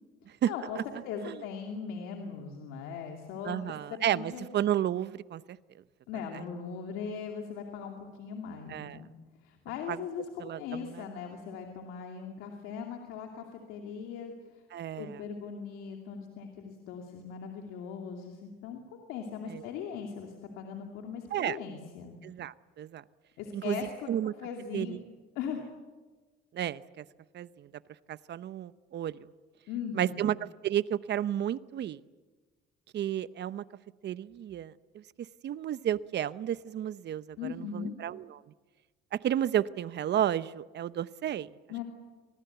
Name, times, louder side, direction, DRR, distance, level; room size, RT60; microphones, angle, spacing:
voice 1, 0.5-0.8 1.0-4.5 6.1-9.1 9.4-14.3 15.0-22.2 23.4-24.1 24.4-25.0 25.3-25.7 29.7-30.2 37.4-37.9 41.7-41.8, left 6 dB, 85° left, 2 dB, 2.7 m, -39 dB
voice 2, 3.4-5.4 8.7-9.0 9.9-10.0 10.4-11.0 14.7-15.2 19.5-19.6 21.3-21.6 22.2-23.0 23.5-23.8 24.1-24.3 24.7-25.0 26.5-27.0 27.3-27.7 28.1-29.1 29.9-30.3 30.6-32.0 32.9-33.6 34.0-34.7 35.4-38.4 39.1-41.5, right 11 dB, 55° right, 16 dB, 0.9 m, -32 dB
25.5 x 19.5 x 8.2 m, 1.3 s
supercardioid pair, 80°, 21 cm